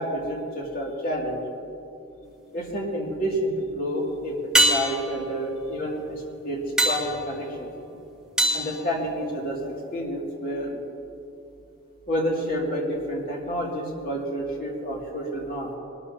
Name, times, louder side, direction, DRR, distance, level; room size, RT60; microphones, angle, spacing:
voice 1, 0.0-1.4 2.5-7.7 8.5-10.8 12.1-15.7, equal, 45° left, -2 dB, 2.4 m, -29 dB
sound 1, 2.2-2.8 4.5-9.7 14.2-14.3, right 1 dB, 5° right, 1.0 m, -27 dB
20.5 x 12.5 x 2.8 m, 2.7 s
head